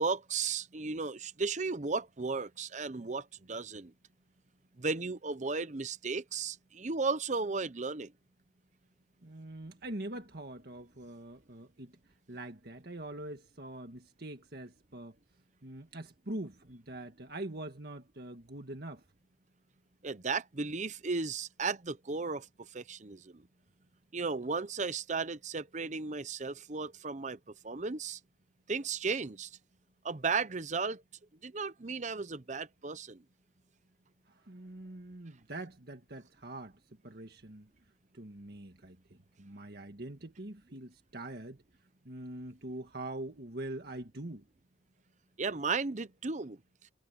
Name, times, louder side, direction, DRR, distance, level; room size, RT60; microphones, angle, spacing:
voice 1, 0.0-3.9 4.8-8.1 20.0-23.4 24.1-27.4 27.6-28.2 28.7-29.5 30.0-31.0 31.4-33.2 45.4-46.6, right 4 dB, 40° right, 0.8 m, -35 dB
voice 2, 9.2-12.0 12.3-15.2 15.6-19.0 34.3-37.7 38.1-41.6 42.0-44.4, right 1 dB, 55° right, 1.8 m, -44 dB
head